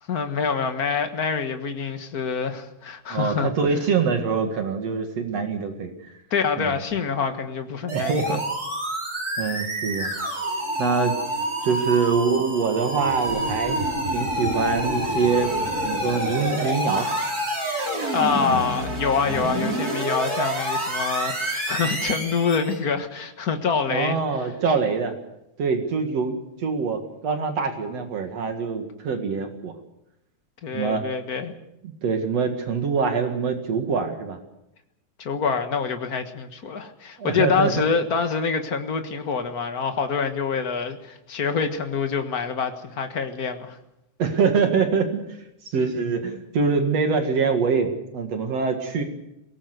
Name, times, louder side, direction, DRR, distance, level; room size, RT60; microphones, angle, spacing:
voice 1, 0.1-3.5 6.3-8.4 18.1-24.2 30.6-31.5 35.2-43.8, left 5 dB, 40° left, 7 dB, 1.4 m, -26 dB
voice 2, 3.1-6.1 6.6-6.8 7.9-8.4 9.4-10.1 10.8-11.2 11.6-13.8 14.1-15.5 15.8-17.1 23.9-25.2 25.6-29.7 30.7-31.1 31.8-34.4 37.2-37.9 44.2-45.2 45.7-49.0, right 5 dB, 60° right, 6 dB, 2.9 m, -24 dB
sound 1, 7.9-22.8, right 1 dB, 30° right, 4.9 m, -27 dB
22.0 x 18.0 x 8.0 m, 0.87 s
omnidirectional pair, 3.5 m